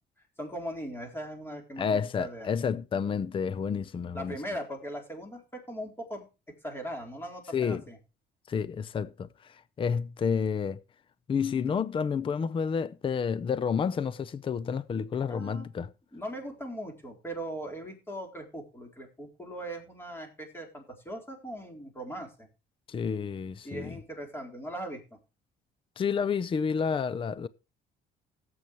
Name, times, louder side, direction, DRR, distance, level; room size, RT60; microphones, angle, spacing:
voice 1, 0.4-2.6 4.1-8.0 15.3-15.7 16.1-22.5 23.6-25.2, right 1 dB, 15° left, 3.9 m, -39 dB
voice 2, 1.8-4.4 7.5-7.8 8.5-10.8 11.3-15.9 22.9-23.9 26.0-27.5, left 6 dB, 30° left, 0.6 m, -30 dB
17.0 x 7.9 x 3.0 m
cardioid pair, 110°, 17 cm